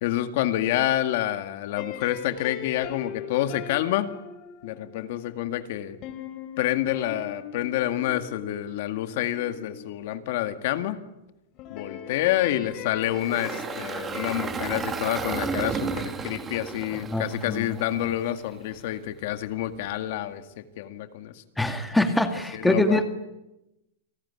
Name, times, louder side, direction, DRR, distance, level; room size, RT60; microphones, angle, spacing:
voice 1, 0.0-4.1 4.6-6.0 6.6-11.0 11.7-21.3 22.5-23.0, left 13 dB, 45° left, 8 dB, 2.0 m, -28 dB
sound 1, 1.7-10.6 11.6-16.1, left 9 dB, 30° left, 3.4 m, -41 dB
Engine, 13.0-18.3, right 5 dB, 10° right, 1.8 m, -33 dB
voice 2, 17.1-17.8 21.6-23.1, left 1 dB, 5° left, 6 dB, 2.2 m, -24 dB
29.5 x 19.5 x 9.9 m, 0.94 s
supercardioid pair, 170°, 0 cm